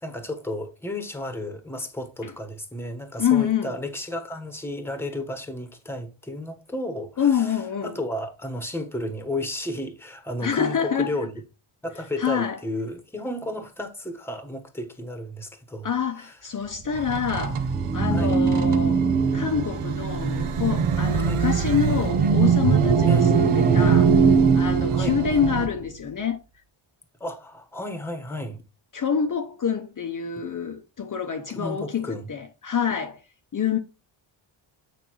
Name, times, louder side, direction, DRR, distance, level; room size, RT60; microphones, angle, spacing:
voice 1, 0.0-11.3 11.8-15.9 16.2-16.4 18.1-18.4 21.2-21.4 23.1-23.3 24.9-25.2 27.2-28.6 31.5-32.3, left 1 dB, 5° left, 1.2 m, -33 dB
voice 2, 3.2-3.7 7.2-7.9 10.4-11.1 12.2-12.6 15.8-19.0 19.3-26.4 28.9-33.2 33.5-33.8, left 7 dB, 40° left, 0.8 m, -26 dB
sound 1, 16.7-26.0, right 5 dB, 20° right, 0.5 m, -25 dB
sound 2, 17.0-25.7, right 7 dB, 85° right, 1.2 m, -23 dB
9.3 x 5.3 x 3.0 m
wide cardioid pair, 180°, 49 cm